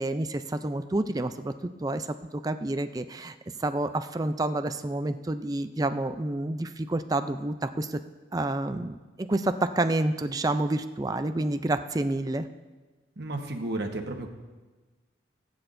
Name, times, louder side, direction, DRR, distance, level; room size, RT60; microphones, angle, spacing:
voice 1, 0.0-1.5 1.8-2.1 2.3-8.0 8.3-12.5, right 2 dB, 20° right, 9 dB, 0.4 m, -29 dB
voice 2, 13.2-14.3, right 2 dB, 55° right, 3 dB, 1.2 m, -32 dB
19.0 x 8.8 x 2.6 m, 1.3 s
head